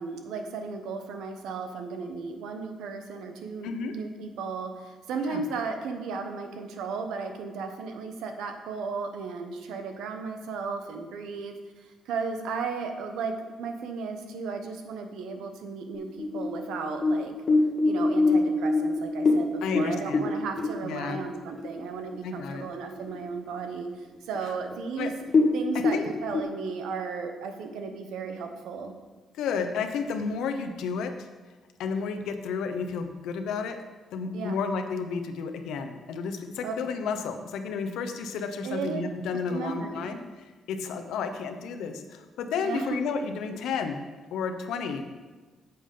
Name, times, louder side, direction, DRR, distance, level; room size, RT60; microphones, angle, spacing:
voice 1, 0.0-13.3 13.6-17.3 17.8-25.1 25.5-28.9 34.3-34.6 36.6-36.9 38.6-39.0 39.5-40.1 42.6-42.8, right 5 dB, 85° right, 6 dB, 0.9 m, -35 dB
voice 2, 3.6-3.9 5.2-5.4 19.6-20.3 20.8-21.2 22.2-22.7 24.4-24.5 24.9-25.1 25.9-26.0 29.3-31.3 31.8-33.8 34.1-44.0 44.3-45.0, left 5 dB, 85° left, 7 dB, 0.7 m, -32 dB
sound 1, 15.9-21.8 22.1-22.2 22.6-23.2 23.6-23.7 24.3-24.4 24.7-24.9 25.2-26.4, left 3 dB, 45° left, 1.2 m, -24 dB
8.5 x 7.0 x 3.8 m, 1.3 s
cardioid pair, 90°, 0 cm